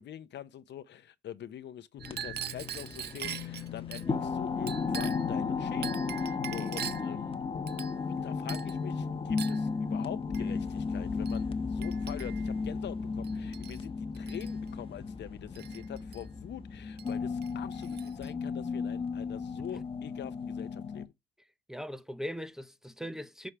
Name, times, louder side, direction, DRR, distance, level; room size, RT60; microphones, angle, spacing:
voice 1, 0.0-7.5 8.1-21.1, left 10 dB, 60° left, 0.7 m, -44 dB
sound 1, 2.0-21.1, left 5 dB, 30° left, 1.0 m, -34 dB
Chink clink, 2.0-4.1 4.7-5.3 5.8-7.1 7.7-8.2 8.5-8.8 9.4-9.6 10.3-10.5 11.3-11.4 11.8-12.5 13.2-13.8 14.1-14.5 15.5-16.2 17.0-17.1 17.4-18.3, right 9 dB, 55° right, 0.6 m, -42 dB
voice 2, 21.7-23.5, equal, ahead, 0.7 m, -39 dB
6.2 x 3.2 x 5.6 m
cardioid pair, 90°, 20 cm